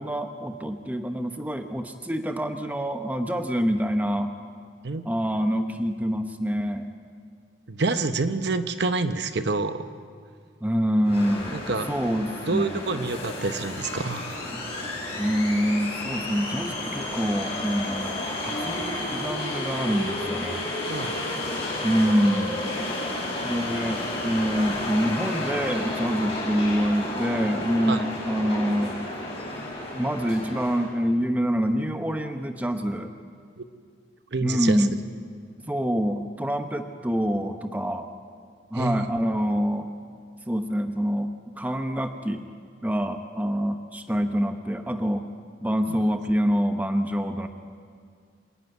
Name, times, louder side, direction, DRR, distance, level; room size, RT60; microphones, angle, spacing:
voice 1, 0.0-4.3 5.0-6.9 10.6-13.0 15.2-20.6 21.8-22.7 23.4-29.0 29.9-33.1 34.4-35.0 35.7-38.1 38.7-39.9 40.5-41.3 41.6-42.4 42.8-45.3 45.6-47.5, equal, 10° right, 6 dB, 0.9 m, -26 dB
voice 2, 7.7-9.8 11.5-11.9 12.5-14.2 20.9-21.1 27.9-28.0 33.6-33.7 34.3-34.9 38.7-39.1 45.9-46.0, right 3 dB, 60° right, 10 dB, 0.8 m, -27 dB
sound 1, 11.0-30.9, left 1 dB, 30° left, 5.9 m, -32 dB
27.0 x 11.0 x 9.5 m, 2.1 s
head